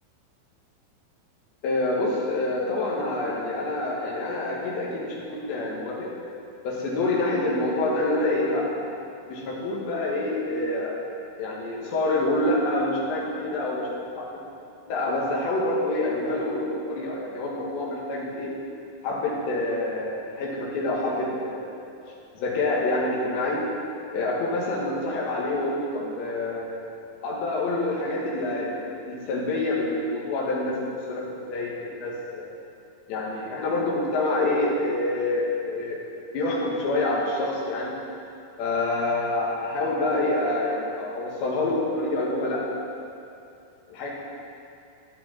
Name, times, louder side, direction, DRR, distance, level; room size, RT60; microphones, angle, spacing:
voice 1, 1.6-6.1 6.6-8.8 9.3-10.9 11.4-13.8 14.1-14.4 14.9-18.5 19.0-21.9 22.3-23.6 24.1-26.9 27.2-30.7 31.1-31.2 31.5-32.5 33.1-36.0 36.3-37.9 38.6-42.8 43.9-44.1, left 2 dB, 70° left, -4 dB, 4.1 m, -27 dB
13.0 x 11.0 x 4.5 m, 2.6 s
omnidirectional pair, 5.3 m